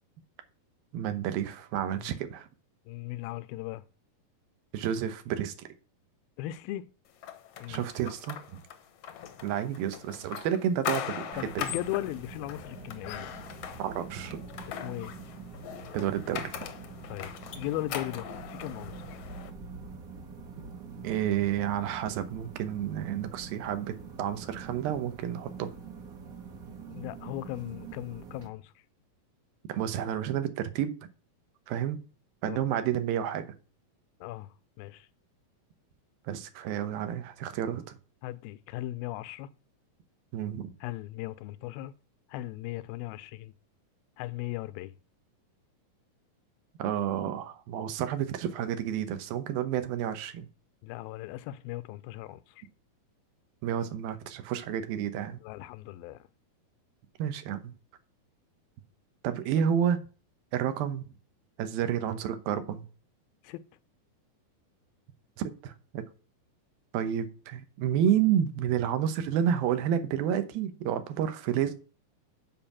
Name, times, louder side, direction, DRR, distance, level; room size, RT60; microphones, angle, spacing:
voice 1, 0.9-2.5 4.7-5.7 7.7-8.6 9.4-11.6 13.8-14.4 15.9-16.6 21.0-25.7 29.7-31.0 31.7-32.0 32.4-33.5 36.3-38.0 40.3-40.7 46.8-50.5 53.6-55.4 57.2-57.7 59.2-60.0 60.5-61.0 61.6-62.9 65.4-66.1 66.9-71.7, right 9 dB, 85° right, 2.9 m, -30 dB
voice 2, 2.9-3.9 6.4-6.8 7.6-7.8 11.4-13.3 14.7-15.2 17.1-19.2 26.9-28.7 32.4-32.6 34.2-35.1 38.2-39.5 40.8-41.9 42.3-43.5 44.2-45.0 50.8-52.7 55.4-56.3 63.4-63.6, left 15 dB, 85° left, 2.4 m, -38 dB
sound 1, 7.2-19.5, left 9 dB, 70° left, 1.5 m, -40 dB
sound 2, 11.3-28.5, right 5 dB, 50° right, 1.0 m, -45 dB
7.7 x 5.5 x 7.2 m
omnidirectional pair, 4.2 m